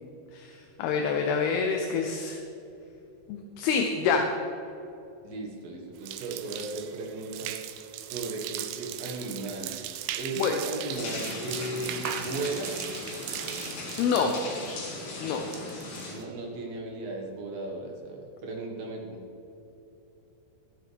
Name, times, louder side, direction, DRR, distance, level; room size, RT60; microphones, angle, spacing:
voice 1, 0.3-2.4 3.3-4.2 10.4-10.5 14.0-14.3 15.2-15.4, left 6 dB, 75° left, 3 dB, 2.6 m, -27 dB
voice 2, 5.2-7.6 8.1-9.7 10.2-12.8 15.4-19.2, right 2 dB, 60° right, 0 dB, 3.2 m, -36 dB
sound 1, 6.0-16.2, right 12 dB, 80° right, 2.7 m, -39 dB
sound 2, 10.9-16.1, left 2 dB, 55° left, 3.6 m, -38 dB
23.0 x 7.9 x 3.5 m, 2.9 s
omnidirectional pair, 5.0 m